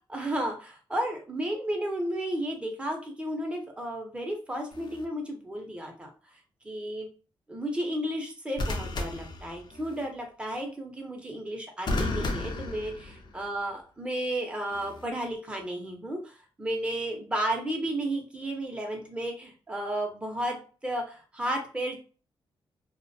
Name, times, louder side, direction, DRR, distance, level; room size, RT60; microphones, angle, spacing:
voice 1, 0.1-6.1 6.6-7.1 7.5-12.9 13.3-22.0, right 1 dB, 10° right, 1 dB, 0.7 m, -33 dB
sound 1, 4.7-5.0 8.6-10.0 11.9-13.5 14.7-15.0, left 2 dB, 50° left, 0.5 m, -33 dB
2.4 x 2.1 x 2.6 m, 0.37 s
cardioid pair, 110°, 10 cm